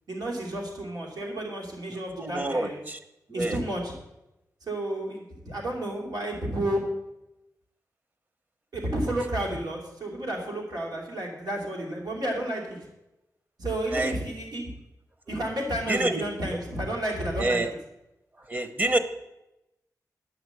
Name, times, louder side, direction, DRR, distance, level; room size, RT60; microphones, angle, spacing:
voice 1, 0.1-2.8 3.3-3.9 4.6-6.8 8.7-12.9 13.6-14.7 15.3-17.6, right 1 dB, 80° right, -1 dB, 2.8 m, -31 dB
voice 2, 1.9-3.0 3.3-3.6 13.9-14.1 15.9-16.2 17.4-17.7 18.4-19.0, right 2 dB, 25° right, 9 dB, 0.8 m, -27 dB
10.5 x 5.9 x 7.9 m, 0.92 s
wide cardioid pair, 165°, 7 cm